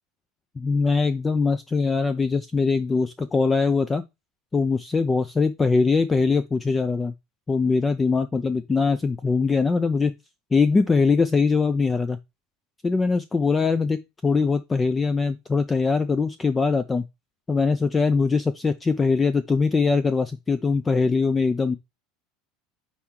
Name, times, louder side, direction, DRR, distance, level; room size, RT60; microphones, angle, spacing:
voice 1, 0.6-4.0 4.5-7.1 7.5-10.2 10.5-12.2 12.8-17.0 17.5-21.8, left 4 dB, 15° left, 0.4 m, -22 dB
6.0 x 4.4 x 3.6 m
supercardioid pair, 145°, 0 cm